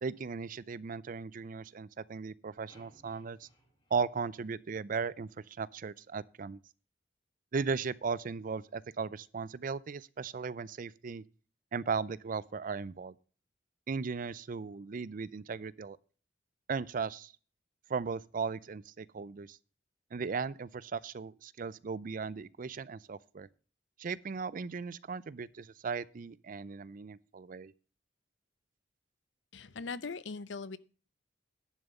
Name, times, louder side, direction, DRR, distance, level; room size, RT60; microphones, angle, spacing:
voice 1, 0.0-3.5 3.9-6.6 7.5-11.2 11.7-13.1 13.9-16.0 16.7-17.3 17.9-19.6 20.1-23.5 24.0-27.7, right 5 dB, 45° right, 0.4 m, -37 dB
sound 1, 2.7-5.0, equal, 25° left, 2.9 m, -65 dB
voice 2, 29.5-30.8, left 4 dB, 75° left, 0.7 m, -40 dB
10.5 x 6.9 x 5.4 m
head